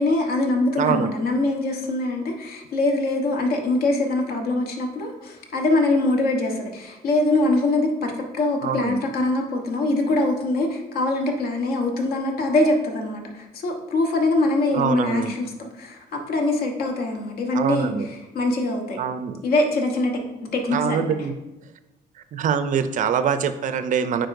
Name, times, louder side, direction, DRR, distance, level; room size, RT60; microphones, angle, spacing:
voice 1, 0.0-19.0 19.4-20.2 20.5-21.1, left 2 dB, 65° left, 2 dB, 1.1 m, -23 dB
voice 2, 0.8-1.1 8.6-9.0 14.7-15.3 17.5-18.1 19.0-19.4 20.7-21.3 22.3-24.3, right 7 dB, 50° right, 11 dB, 0.5 m, -24 dB
9.3 x 4.3 x 2.6 m, 0.99 s
cardioid pair, 110°, 17 cm